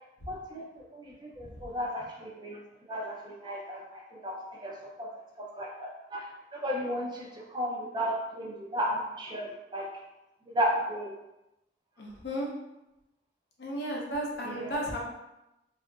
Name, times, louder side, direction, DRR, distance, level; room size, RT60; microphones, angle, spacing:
voice 1, 0.3-2.6 2.9-4.7 5.0-5.1 5.6-9.9 10.5-11.1 14.4-14.8, equal, 25° right, -2 dB, 0.4 m, -34 dB
voice 2, 12.0-12.5 13.6-15.0, equal, 70° left, -2 dB, 0.6 m, -34 dB
2.7 x 2.4 x 2.3 m, 0.95 s
head